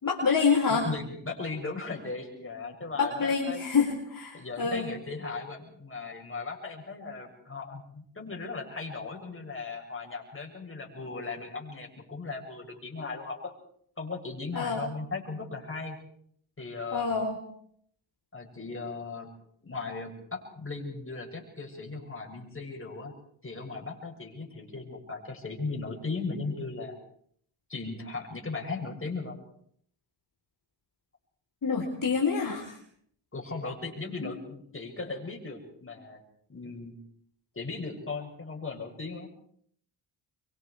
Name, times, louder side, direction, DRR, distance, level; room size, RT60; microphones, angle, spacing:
voice 1, 0.0-0.8 3.0-4.9 14.5-14.8 16.9-17.4 31.6-32.8 34.2-34.3, left 5 dB, 45° left, 0 dB, 4.4 m, -27 dB
voice 2, 0.7-3.7 4.3-13.5 14.0-16.0 16.6-17.1 18.3-19.3 19.6-23.1 23.4-27.0 27.7-29.4 33.3-36.2 36.5-36.9 37.6-39.3, left 3 dB, 25° left, 1 dB, 7.3 m, -37 dB
24.5 x 24.0 x 5.0 m, 0.65 s
cardioid pair, 65°, 46 cm